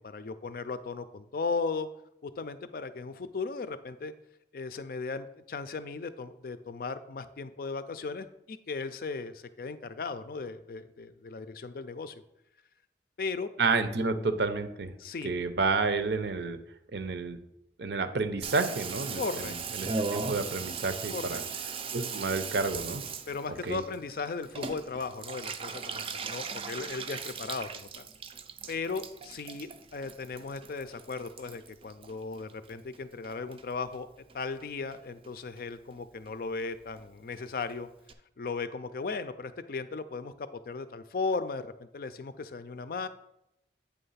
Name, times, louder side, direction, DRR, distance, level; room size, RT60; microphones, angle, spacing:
voice 1, 0.0-1.9 2.2-4.1 4.5-12.2 13.2-13.5 15.0-15.3 19.1-19.6 21.1-21.4 23.3-28.1 28.7-34.1 34.3-37.9 38.4-43.1, left 4 dB, 50° left, 12 dB, 0.4 m, -36 dB
voice 2, 13.6-14.9 15.2-16.6 16.9-17.4 17.8-19.5 19.7-21.4 21.9-23.0 23.6-23.8, right 3 dB, 70° right, 10 dB, 0.7 m, -30 dB
Water tap faucet / Bathtub (filling or washing), 18.4-33.0 33.2-34.0 34.3-34.4 34.6-34.7 34.9-35.3 35.6-35.7 35.9-36.0 36.3-36.4 36.6-36.7 36.9-37.0 37.3-37.4 37.7-37.8 38.1-38.2, right 5 dB, 30° right, 0.4 m, -38 dB
8.5 x 3.3 x 5.6 m, 0.84 s
head